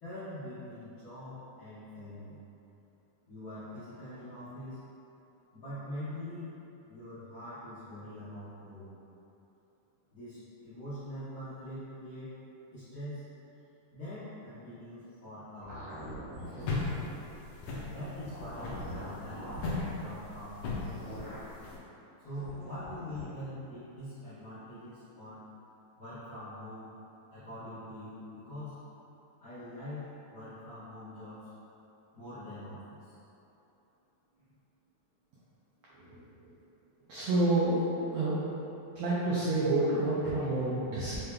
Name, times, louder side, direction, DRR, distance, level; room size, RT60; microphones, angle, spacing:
voice 1, 0.0-2.4 3.3-4.8 5.5-6.6 6.9-8.9 10.1-12.3 12.7-13.3 13.9-15.9 16.4-16.8 17.8-19.5 19.8-21.0 22.2-25.4 26.0-26.9 27.3-28.8 29.4-31.5 32.1-33.1, left 1 dB, 65° left, -16 dB, 1.2 m, -43 dB
sound 1, 15.6-17.2 18.1-19.9 20.8-21.5 22.3-23.2, equal, 50° right, 2.0 m, -43 dB
sound 2, 16.6-21.7, left 3 dB, 90° left, 1.4 m, -37 dB
voice 2, 35.9-36.5 37.1-38.4 38.9-41.2, right 2 dB, 90° right, -8 dB, 1.4 m, -29 dB
5.4 x 3.3 x 2.2 m, 3.0 s
omnidirectional pair, 3.6 m